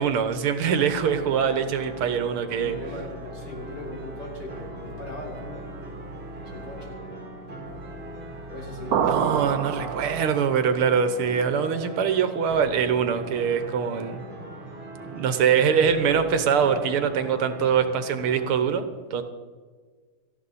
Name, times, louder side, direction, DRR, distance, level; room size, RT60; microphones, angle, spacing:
voice 1, 0.0-2.8 9.1-14.2 15.1-19.2, right 7 dB, 85° right, 9 dB, 1.9 m, -23 dB
sound 1, 0.7-18.5, right 2 dB, 25° right, 4.1 m, -40 dB
voice 2, 0.8-1.4 2.6-5.6 6.4-7.0 8.5-9.5 9.8-9.9 15.8-16.3, left 2 dB, 50° left, -1 dB, 4.0 m, -38 dB
sound 2, 8.9-10.6, right 8 dB, 65° right, 0.9 m, -26 dB
18.0 x 14.0 x 4.2 m, 1.5 s
omnidirectional pair, 2.4 m